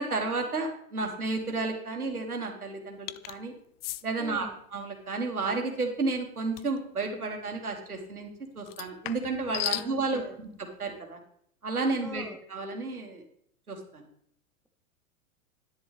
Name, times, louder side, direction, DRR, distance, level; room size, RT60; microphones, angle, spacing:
voice 1, 0.0-3.5 4.0-8.3 8.6-10.5 10.8-11.2 11.6-12.2 12.5-13.2 13.7-14.1, right 3 dB, 85° right, 2 dB, 2.4 m, -32 dB
sound 1, 3.1-3.4 3.8-4.0 6.6-6.8 8.7-9.9, left 15 dB, 45° left, 0.5 m, -35 dB
voice 2, 4.2-4.6 9.7-10.4 12.0-12.4, equal, ahead, 4 dB, 0.6 m, -43 dB
10.5 x 10.0 x 3.5 m, 0.67 s
figure-of-eight pair, 100°, 43 cm